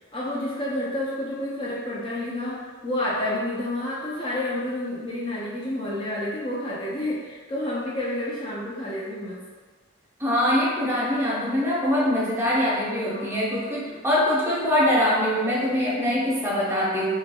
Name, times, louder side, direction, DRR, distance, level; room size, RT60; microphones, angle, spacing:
voice 1, 0.1-9.4 13.0-13.4 13.8-14.0, left 1 dB, 25° left, -7 dB, 0.5 m, -30 dB
voice 2, 10.2-17.2, left 1 dB, 10° right, -7 dB, 0.7 m, -23 dB
3.3 x 3.2 x 2.2 m, 1.4 s
head